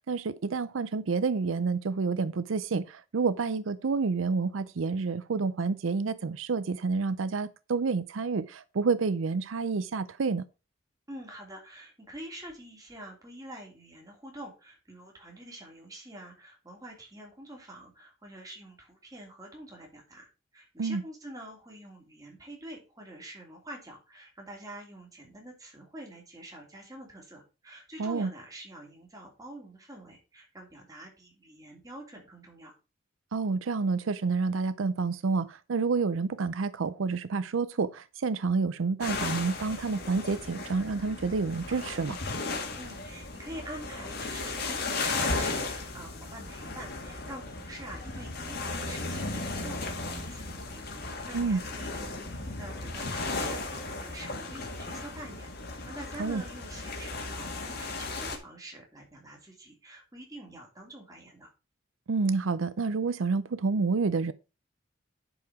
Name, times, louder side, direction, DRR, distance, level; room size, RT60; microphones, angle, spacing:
voice 1, 0.1-10.4 20.8-21.0 28.0-28.3 33.3-42.2 51.3-51.6 56.2-56.4 62.1-64.3, right 4 dB, 90° right, 0.5 m, -29 dB
voice 2, 11.1-32.8 42.8-61.5, right 1 dB, 20° right, 3.1 m, -46 dB
sound 1, 39.0-58.4, left 3 dB, 55° left, 2.0 m, -35 dB
11.0 x 4.8 x 4.8 m
head